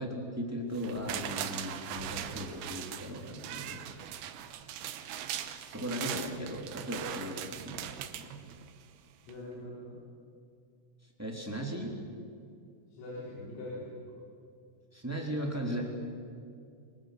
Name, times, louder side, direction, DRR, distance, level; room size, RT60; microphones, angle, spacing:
voice 1, 0.0-3.8 5.7-8.4 11.2-11.9 14.9-15.8, equal, 5° right, 0 dB, 1.8 m, -37 dB
sound 1, 0.7-8.9 9.3-9.4, right 10 dB, 80° right, 2.2 m, -40 dB
voice 2, 9.2-10.0 12.9-14.2, left 1 dB, 85° left, -6 dB, 7.1 m, -42 dB
28.0 x 24.5 x 6.8 m, 2.4 s
omnidirectional pair, 5.9 m